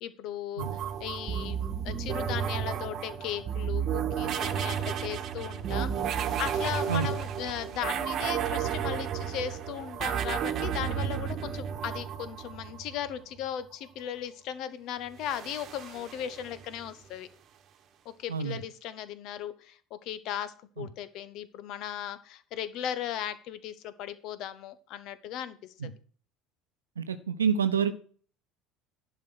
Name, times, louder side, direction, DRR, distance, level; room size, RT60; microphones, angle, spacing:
voice 1, 0.0-17.3 18.0-25.6, left 10 dB, 55° left, 14 dB, 1.0 m, -37 dB
sound 1, 0.6-13.2 15.2-16.8, right 8 dB, 45° right, 1.2 m, -32 dB
voice 2, 27.0-27.9, right 7 dB, 85° right, 11 dB, 0.8 m, -28 dB
11.0 x 5.2 x 6.2 m, 0.44 s
figure-of-eight pair, 65°, 0 cm